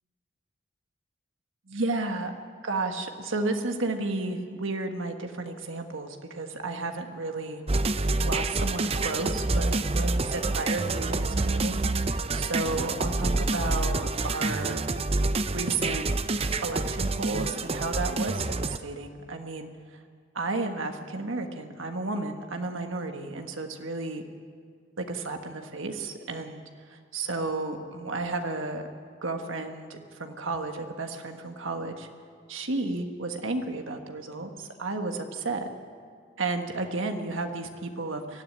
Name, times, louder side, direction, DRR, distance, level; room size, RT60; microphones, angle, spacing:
voice 1, 1.7-2.3 2.6-7.6 8.2-14.9 15.5-16.1 16.6-19.7 20.3-24.2 25.0-26.6 26.9-28.8 29.2-32.1 32.5-35.7 36.4-38.4, right 3 dB, 80° right, 5 dB, 1.6 m, -32 dB
sound 1, 7.7-18.8, right 3 dB, 30° right, 0.6 m, -27 dB
23.0 x 13.0 x 9.9 m, 2.1 s
head